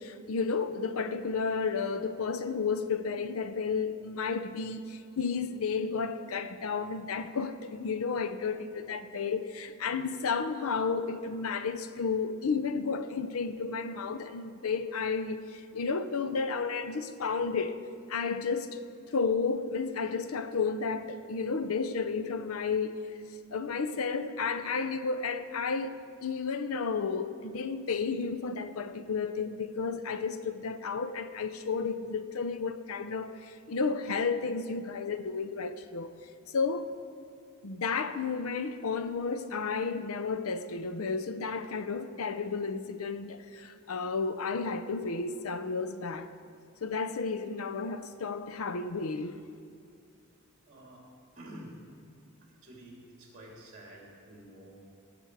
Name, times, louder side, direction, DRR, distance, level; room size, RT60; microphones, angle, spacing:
voice 1, 0.0-17.8 18.1-18.8 19.1-22.9 23.5-36.1 36.5-36.9 37.6-46.3 46.8-49.4, left 5 dB, 85° left, 0.6 m, -32 dB
voice 2, 50.7-51.1 51.3-51.8 52.4-54.8, right 1 dB, 35° right, 2.9 m, -49 dB
17.0 x 6.8 x 4.8 m
head